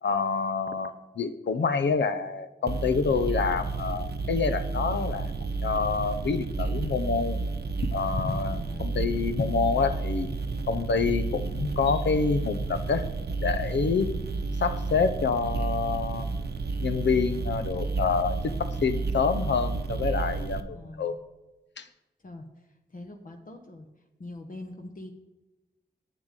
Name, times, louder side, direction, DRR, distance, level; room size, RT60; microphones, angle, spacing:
voice 1, 0.0-5.3 5.6-7.4 7.9-10.3 10.7-13.1 13.4-14.1 14.6-16.3 16.8-21.1 21.8-21.9, left 5 dB, 80° left, 10 dB, 0.7 m, -27 dB
sound 1, 2.7-20.6, right 3 dB, 65° right, 0.8 m, -31 dB
voice 2, 8.5-9.1 20.7-21.2 22.2-22.4 22.9-23.9 24.2-25.1, left 2 dB, 50° left, 3 dB, 1.0 m, -43 dB
8.4 x 7.0 x 6.5 m, 1.0 s
cardioid pair, 50°, 18 cm